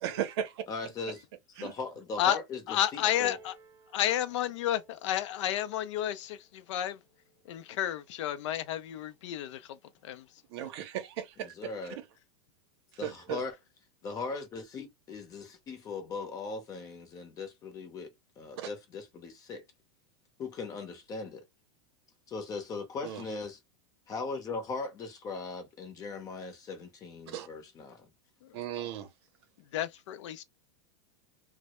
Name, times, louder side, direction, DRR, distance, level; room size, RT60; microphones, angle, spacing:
voice 1, 0.0-0.6 1.6-1.7 10.5-11.5 12.0-12.1 13.0-13.4 18.6-18.7 23.0-23.2 27.3-27.5 28.5-29.1, right 10 dB, 60° right, 0.6 m, -36 dB
voice 2, 0.7-1.2 1.6-3.4 11.4-12.0 13.0-13.5 14.0-19.6 20.4-21.4 22.3-23.6 24.1-28.1, left 4 dB, 25° left, 0.6 m, -39 dB
voice 3, 2.7-3.5 3.9-7.0 7.5-9.6 10.0-10.2 29.7-30.4, left 11 dB, 75° left, 0.4 m, -31 dB
Piano, 3.0-8.2 9.1-9.2, right 3 dB, 20° right, 0.7 m, -55 dB
2.1 x 2.0 x 2.9 m
supercardioid pair, 150°, 15 cm